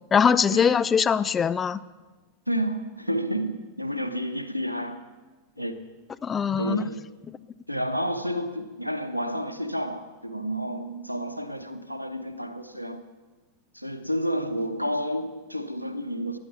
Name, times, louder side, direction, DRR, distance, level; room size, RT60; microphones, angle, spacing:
voice 1, 0.1-1.8 6.2-6.9, left 7 dB, 20° left, 0.4 m, -22 dB
voice 2, 2.5-5.0 5.6-5.7 6.6-7.1 7.7-13.0 13.8-16.4, equal, 90° right, 0.9 m, -30 dB
14.5 x 9.9 x 7.2 m
figure-of-eight pair, 90°, 0 cm